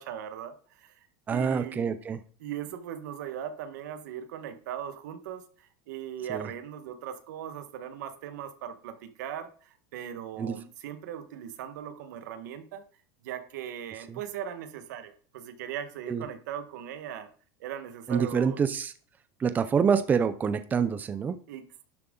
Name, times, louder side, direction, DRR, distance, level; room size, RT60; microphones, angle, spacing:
voice 1, 0.0-1.9 2.4-12.8 13.2-17.3 17.6-18.6 21.5-21.8, right 9 dB, 90° right, 9 dB, 1.5 m, -39 dB
voice 2, 1.3-2.2 6.3-6.5 10.4-10.5 14.1-14.2 16.1-16.2 18.1-18.9 19.4-21.4, right 6 dB, 20° right, 11 dB, 0.6 m, -26 dB
12.0 x 7.6 x 3.9 m, 0.42 s
supercardioid pair, 155°, 9 cm